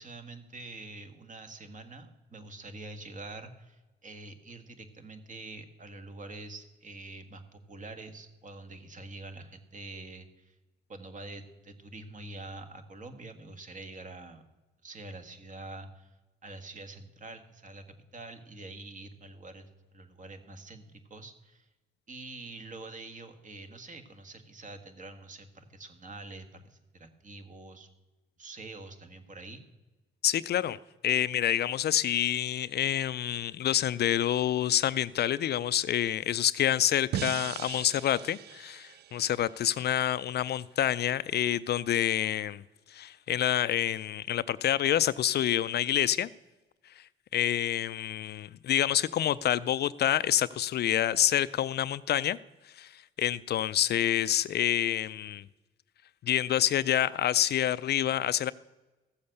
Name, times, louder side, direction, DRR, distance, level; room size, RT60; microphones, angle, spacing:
voice 1, 0.0-10.5 10.9-14.4 14.8-16.1 16.4-21.7 22.1-27.9 28.4-29.6, right 2 dB, 40° right, 8 dB, 1.6 m, -46 dB
voice 2, 30.2-30.8 31.0-42.6 42.9-46.3 47.0-47.1 47.3-52.4 52.7-55.4 56.2-58.5, left 11 dB, 55° left, 17 dB, 0.4 m, -27 dB
sound 1, 37.1-40.3, right 11 dB, 55° right, 0.4 m, -39 dB
15.0 x 7.1 x 6.5 m, 1.1 s
cardioid pair, 90°, 20 cm